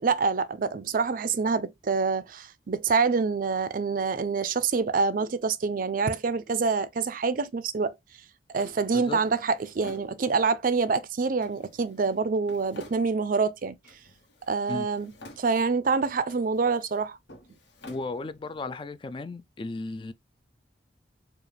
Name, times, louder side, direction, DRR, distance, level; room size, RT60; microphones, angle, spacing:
voice 1, 0.0-7.9 8.5-13.8 14.5-17.2, right 4 dB, 50° right, 0.4 m, -26 dB
Drawer open or close, 8.6-10.7 11.4-13.5 13.8-14.6 14.9-15.9 16.2-18.7, left 1 dB, 85° left, 1.3 m, -52 dB
voice 2, 17.9-20.1, left 3 dB, 30° left, 0.3 m, -35 dB
4.8 x 2.4 x 3.2 m
head